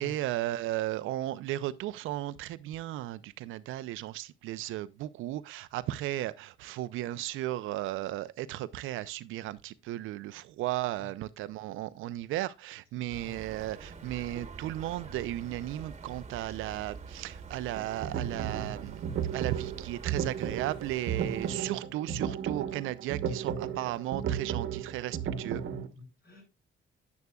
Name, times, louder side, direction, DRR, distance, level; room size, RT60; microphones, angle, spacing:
voice 1, 0.0-25.6, right 14 dB, 90° right, 0.6 m, -35 dB
sound 1, 13.1-21.6, right 5 dB, 35° right, 1.2 m, -46 dB
voice 2, 13.2-13.6 21.2-21.5 25.5-26.4, left 3 dB, 55° left, 6.9 m, -50 dB
sound 2, 17.8-25.9, right 8 dB, 70° right, 1.1 m, -34 dB
9.5 x 9.4 x 2.3 m
cardioid pair, 90°, 20 cm